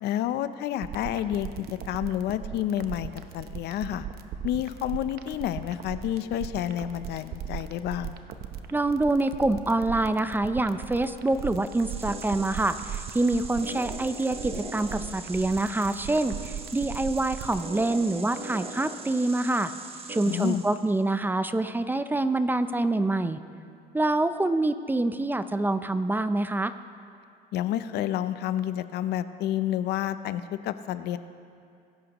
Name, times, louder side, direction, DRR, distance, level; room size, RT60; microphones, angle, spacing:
voice 1, 0.0-4.1 4.4-8.2 20.2-20.6 27.5-31.2, left 11 dB, 75° left, 12 dB, 0.6 m, -29 dB
sound 1, 0.8-17.6, right 9 dB, 65° right, 0.8 m, -37 dB
voice 2, 8.7-19.7 20.1-23.4 23.9-26.7, right 2 dB, 10° right, 11 dB, 0.5 m, -26 dB
sound 2, 11.4-21.0, right 4 dB, 35° right, 1.2 m, -41 dB
22.5 x 11.5 x 3.0 m, 2.5 s
cardioid pair, 110°, 17 cm